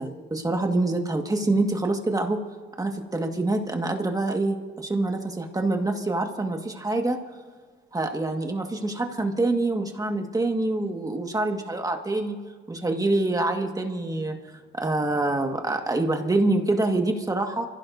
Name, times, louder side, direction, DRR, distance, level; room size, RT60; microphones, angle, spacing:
voice 1, 0.0-2.4 2.8-7.2 7.9-12.4 12.7-14.4 14.7-17.7, right 2 dB, 20° right, 4 dB, 1.7 m, -26 dB
25.5 x 15.5 x 2.7 m, 1.5 s
cardioid pair, 90°, 20 cm